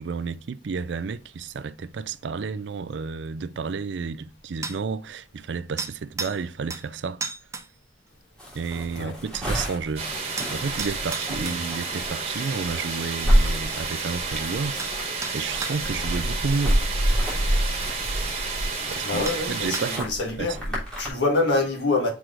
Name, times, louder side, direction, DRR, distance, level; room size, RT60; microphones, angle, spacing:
voice 1, 0.0-7.2 8.5-10.1 10.5-16.8 18.9-20.1 20.4-20.6, right 5 dB, 70° right, 0.4 m, -31 dB
sound 1, 4.6-4.8 5.8-6.4 6.7-6.9 7.2-7.7 10.4-11.6 14.2-14.3 14.8-15.0 15.2-15.8 17.4-17.5 18.5-18.6 19.3-19.4 19.7-20.1, right 4 dB, 15° right, 0.5 m, -33 dB
sound 2, 8.4-21.1, equal, 5° left, 3.3 m, -28 dB
sound 3, 10.0-20.0, right 4 dB, 35° right, 1.7 m, -31 dB
voice 2, 19.0-22.1, left 3 dB, 70° left, 2.0 m, -26 dB
6.0 x 4.8 x 3.8 m
head